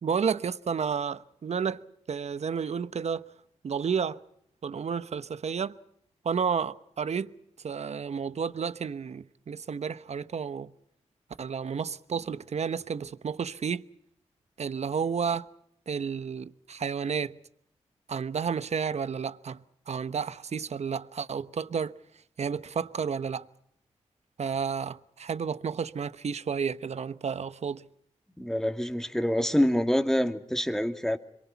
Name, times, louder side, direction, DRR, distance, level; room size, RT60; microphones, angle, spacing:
voice 1, 0.0-3.2 3.6-4.2 4.6-5.8 6.2-10.7 11.4-13.8 14.6-15.5 15.9-17.4 18.1-21.9 22.4-23.5 24.4-27.9, right 6 dB, 60° right, 1.1 m, -31 dB
voice 2, 28.4-31.2, equal, 5° left, 2.4 m, -26 dB
26.5 x 23.0 x 5.8 m
cardioid pair, 50°, 12 cm